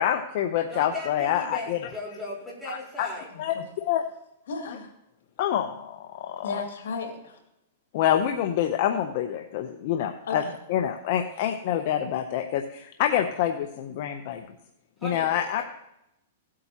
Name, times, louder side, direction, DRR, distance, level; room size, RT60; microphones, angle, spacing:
voice 1, 0.0-1.8 3.0-3.1 3.4-4.0 5.4-6.6 7.9-10.4 10.7-14.4 15.0-15.6, left 10 dB, 50° left, 5 dB, 0.8 m, -26 dB
voice 2, 0.7-3.3 15.0-15.6, left 1 dB, ahead, -6 dB, 4.2 m, -37 dB
voice 3, 3.3-3.6 4.5-4.9 6.4-7.4 10.2-10.5, left 4 dB, 85° left, 2 dB, 2.6 m, -34 dB
17.0 x 8.6 x 3.0 m, 0.82 s
hypercardioid pair, 145°, 0 cm